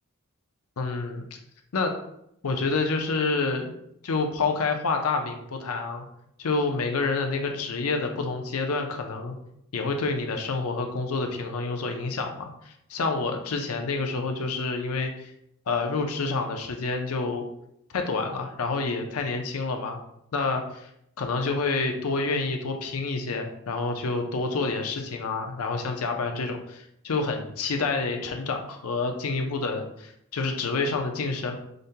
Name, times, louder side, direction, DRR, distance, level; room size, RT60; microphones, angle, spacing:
voice 1, 0.8-1.2 1.7-2.0 2.4-3.7 4.0-6.1 6.4-9.3 9.7-15.3 15.7-17.5 17.9-20.0 20.3-20.9 21.2-31.6, left 3 dB, 80° left, 4 dB, 0.6 m, -28 dB
5.0 x 2.2 x 2.8 m, 0.76 s
head